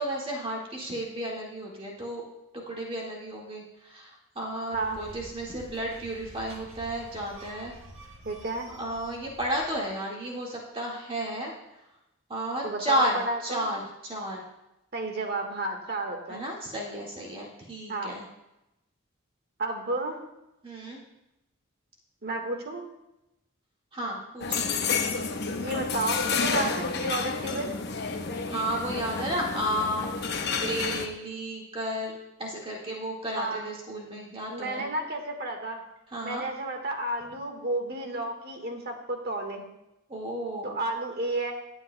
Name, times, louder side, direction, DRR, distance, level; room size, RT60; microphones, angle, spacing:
voice 1, 0.0-2.2 2.5-7.7 8.8-11.5 12.3-14.4 16.3-18.3 20.6-21.0 23.9-24.7 28.5-30.1 30.6-34.9 36.1-36.4 40.1-40.8, right 1 dB, 25° right, -3 dB, 1.8 m, -33 dB
sound 1, 4.7-10.0, right 1 dB, 75° right, 1.5 m, -49 dB
voice 2, 8.2-8.7 12.6-13.7 14.9-16.4 17.9-18.1 19.6-20.2 22.2-22.8 25.6-27.7 33.4-33.6 34.5-35.8 36.2-39.6 40.6-41.5, right 2 dB, 50° right, 3 dB, 1.6 m, -32 dB
sound 2, 24.4-31.1, left 5 dB, 55° left, 0.9 m, -30 dB
17.5 x 8.8 x 2.2 m, 0.90 s
head